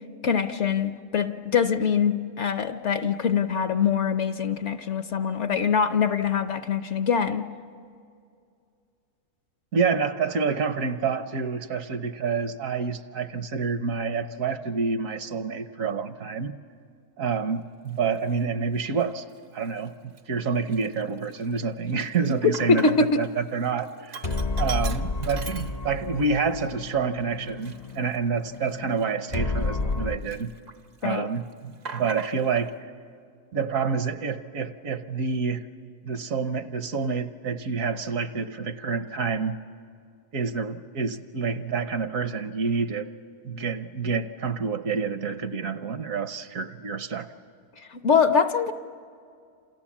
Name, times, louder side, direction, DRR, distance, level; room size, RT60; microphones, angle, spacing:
voice 1, 0.2-7.5 22.4-23.1 31.0-31.3 47.9-48.7, left 6 dB, 55° left, 9 dB, 1.0 m, -23 dB
voice 2, 9.7-16.5 17.2-19.2 19.5-24.2 24.6-30.5 31.0-32.7 33.5-35.7 36.0-39.6 40.3-43.1 43.4-47.3, right 5 dB, 65° right, 10 dB, 1.3 m, -28 dB
Sink (filling or washing), 18.0-18.2 18.9-19.4 19.8-19.9 20.2-23.3 23.6-26.2 26.6-26.7 27.4-29.9 30.2-31.0 31.3-32.7, right 4 dB, 45° right, 0.6 m, -41 dB
sound 1, 24.2-30.2, left 3 dB, 35° left, 0.7 m, -31 dB
28.5 x 27.5 x 7.3 m, 2.3 s
omnidirectional pair, 1.6 m